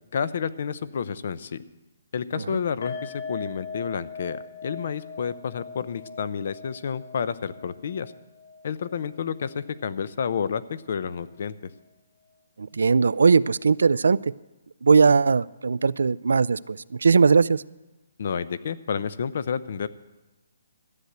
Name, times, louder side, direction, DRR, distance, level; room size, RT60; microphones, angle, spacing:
voice 1, 0.1-1.6 2.1-8.1 8.6-11.7 18.2-19.9, left 7 dB, 50° left, 16 dB, 0.6 m, -30 dB
sound 1, 2.8-10.0 10.3-10.5 10.8-10.9, left 4 dB, 85° left, 4.0 m, -40 dB
voice 2, 12.6-14.3 14.8-17.6, right 5 dB, 85° right, 19 dB, 0.4 m, -19 dB
13.0 x 8.2 x 7.8 m, 1.1 s
hypercardioid pair, 170°, 0 cm